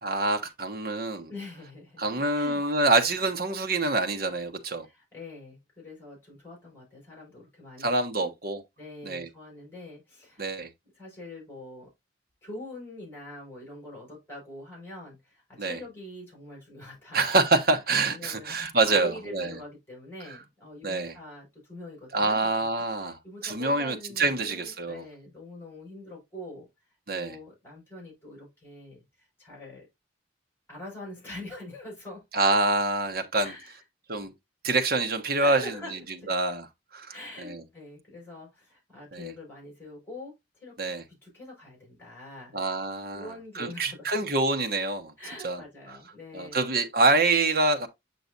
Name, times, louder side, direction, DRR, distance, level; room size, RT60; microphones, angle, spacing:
voice 1, 0.0-1.3 2.0-4.9 7.8-8.6 9.0-9.3 10.4-10.7 15.6-15.8 17.1-19.5 20.8-21.1 22.1-25.0 27.1-27.4 32.3-33.5 34.1-34.3 34.6-36.0 36.3-36.6 36.9-37.6 39.1-39.3 40.8-41.0 42.5-45.1 45.4-45.6 45.9-46.0 46.3-47.9, right 3 dB, 50° right, 1.2 m, -26 dB
voice 2, 1.3-2.6 4.8-8.3 8.8-10.5 10.9-11.9 12.4-17.3 17.7-17.8 18.1-22.7 23.0-26.7 27.1-29.0 29.4-29.9 30.7-32.2 33.4-33.8 35.4-36.3 37.1-40.3 40.6-40.7 41.2-42.6 43.1-44.1 45.2-46.6, left 1 dB, 10° left, 5.7 m, -44 dB
8.2 x 6.0 x 2.5 m
head